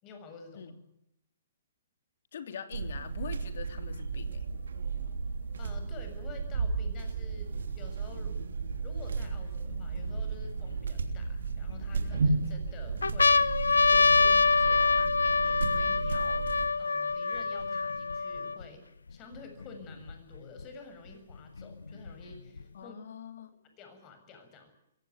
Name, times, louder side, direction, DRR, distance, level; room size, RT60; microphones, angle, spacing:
voice 1, 0.0-0.7 5.6-8.3 8.8-16.5 16.8-18.8 19.1-23.0 23.8-24.7, left 4 dB, 30° left, 7 dB, 7.0 m, -50 dB
voice 2, 2.3-4.5 12.4-12.5 22.7-23.5, left 7 dB, 65° left, 8 dB, 3.2 m, -43 dB
sound 1, 2.7-16.7, right 4 dB, 75° right, 3.2 m, -34 dB
sound 2, 8.7-8.8 9.5-10.7 11.4-12.2 12.7-12.8 13.0-18.6 19.4-19.5 19.6-20.6 21.6-22.6, left 4 dB, 85° left, 0.9 m, -26 dB
22.5 x 17.5 x 9.4 m, 0.82 s
hypercardioid pair, 135°, 0 cm